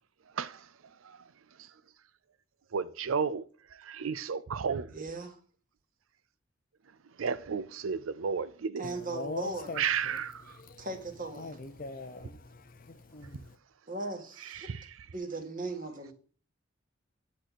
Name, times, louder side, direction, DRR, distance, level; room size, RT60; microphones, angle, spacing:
voice 1, 0.3-1.3 1.6-1.7 2.7-5.0 7.2-8.9 9.7-10.6 14.4-15.1, right 6 dB, 90° right, 0.5 m, -34 dB
voice 2, 4.9-5.4 8.8-9.8 10.8-11.6 13.9-14.7 15.1-16.1, right 2 dB, 40° right, 2.0 m, -38 dB
voice 3, 8.8-9.8 10.7-10.9 11.4-13.5, left 3 dB, 45° left, 0.6 m, -42 dB
10.5 x 4.2 x 6.1 m
head